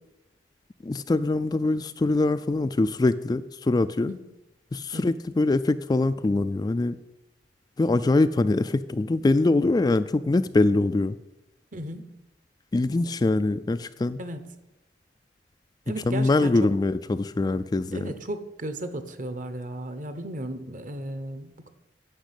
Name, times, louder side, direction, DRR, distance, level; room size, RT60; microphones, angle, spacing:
voice 1, 0.8-4.1 4.7-7.0 7.8-11.2 12.7-14.2 16.0-18.1, left 2 dB, 20° left, 12 dB, 0.3 m, -23 dB
voice 2, 11.7-12.1 14.2-14.5 15.9-16.7 17.9-21.7, right 1 dB, 45° right, 10 dB, 1.0 m, -35 dB
10.0 x 6.1 x 8.3 m, 0.94 s
head